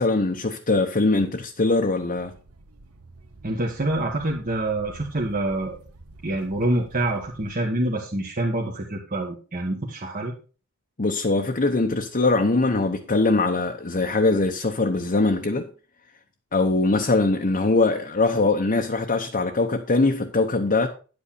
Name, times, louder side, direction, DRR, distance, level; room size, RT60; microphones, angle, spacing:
voice 1, 0.0-2.3 11.0-15.7 16.5-20.9, left 3 dB, 40° left, 0.9 m, -22 dB
sound 1, 2.2-7.6, right 2 dB, 75° right, 1.2 m, -48 dB
voice 2, 3.4-5.8 6.2-10.3, right 1 dB, 40° right, 1.5 m, -26 dB
10.0 x 8.4 x 4.2 m
head